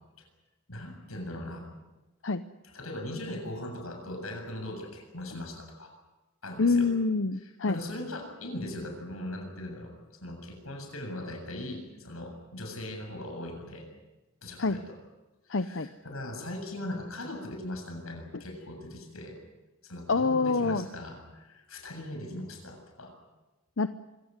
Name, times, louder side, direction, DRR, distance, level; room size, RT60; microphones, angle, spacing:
voice 1, 0.7-1.6 2.7-5.9 6.4-6.9 7.6-9.9 10.2-13.9 14.4-14.9 15.5-19.4 19.8-23.1, left 1 dB, 85° left, 3 dB, 7.5 m, -39 dB
voice 2, 6.6-7.8 14.6-14.8 15.5-15.9 18.3-18.4 20.1-20.9 23.8-23.9, left 4 dB, 60° left, 11 dB, 0.7 m, -26 dB
25.0 x 17.0 x 9.8 m, 1.1 s
head